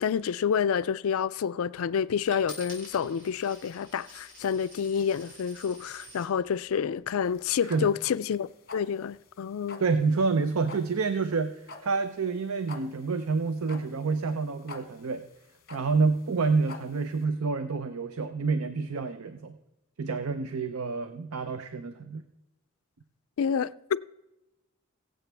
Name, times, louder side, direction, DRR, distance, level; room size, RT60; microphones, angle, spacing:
voice 1, 0.0-8.5 8.7-9.8 23.4-24.0, left 7 dB, 80° left, 0.4 m, -28 dB
Coin (dropping), 2.3-6.3 7.0-7.5, left 1 dB, 55° right, 4.6 m, -48 dB
sound 1, 7.2-17.2, left 3 dB, 45° left, 1.3 m, -47 dB
voice 2, 9.8-15.2 15.7-19.6 20.0-22.2, right 4 dB, 85° right, 0.6 m, -28 dB
22.5 x 7.7 x 3.4 m
head